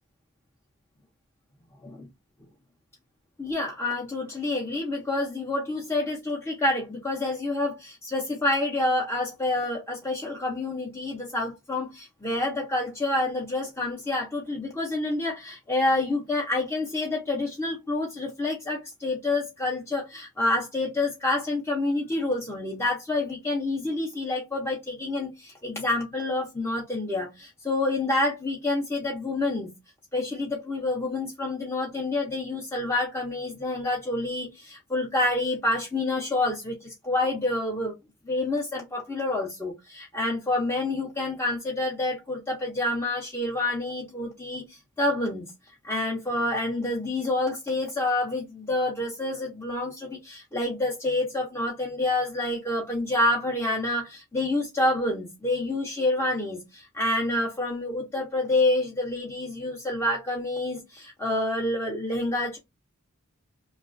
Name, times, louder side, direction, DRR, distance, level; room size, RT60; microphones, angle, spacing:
voice 1, 3.4-29.7 30.1-37.9 38.3-45.5 45.8-62.6, left 2 dB, 10° left, 0.6 m, -28 dB
3.0 x 2.3 x 2.4 m
head